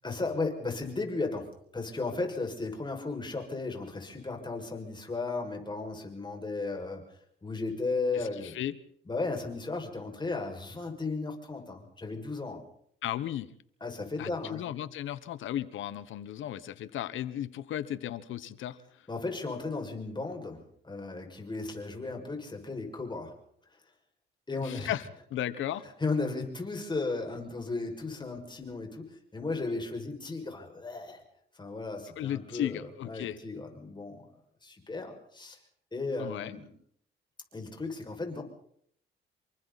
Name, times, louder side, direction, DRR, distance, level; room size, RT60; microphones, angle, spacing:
voice 1, 0.0-7.0 7.4-8.5 9.1-12.6 13.8-14.6 19.1-23.3 24.5-24.9 26.0-29.1 29.3-31.2 31.6-32.8 33.0-34.2 34.6-35.6 35.9-36.7 37.5-38.4, left 3 dB, 25° left, 2 dB, 6.2 m, -35 dB
voice 2, 8.1-8.8 13.0-13.5 14.2-18.8 24.6-25.8 32.2-33.4 36.2-36.6, left 11 dB, 75° left, 15 dB, 1.3 m, -35 dB
28.5 x 24.0 x 4.2 m, 0.66 s
cardioid pair, 90°, 20 cm